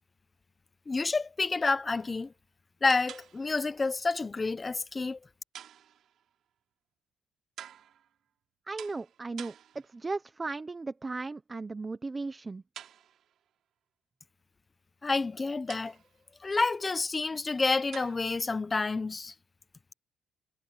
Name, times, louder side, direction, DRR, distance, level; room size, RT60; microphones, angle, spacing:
voice 1, 0.9-2.3 2.8-5.2 15.0-15.9 16.4-19.3, left 3 dB, 25° left, 1.1 m, -29 dB
sound 1, 1.9-2.3 2.9-3.7 5.5-6.3 7.6-8.2 8.8-10.1 12.7-13.5 15.7-16.3 17.9-18.5, right 10 dB, 70° right, 3.5 m, -49 dB
voice 2, 8.7-9.5 9.9-12.6, right 3 dB, 25° right, 1.1 m, -36 dB
cardioid pair, 90°, 0 cm